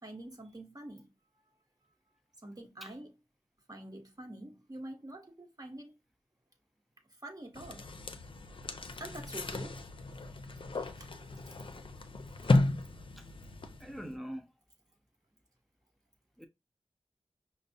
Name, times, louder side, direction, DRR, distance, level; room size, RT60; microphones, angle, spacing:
voice 1, 0.0-1.1 2.4-3.2 3.7-5.9 7.2-7.9 9.0-9.8 11.0-11.1, right 1 dB, 35° right, 1.1 m, -46 dB
sound 1, 7.5-14.1, left 2 dB, 55° left, 0.5 m, -34 dB
voice 2, 13.8-14.4 16.4-16.5, equal, ahead, 0.6 m, -42 dB
5.2 x 2.0 x 2.7 m
wide cardioid pair, 45°, 10 cm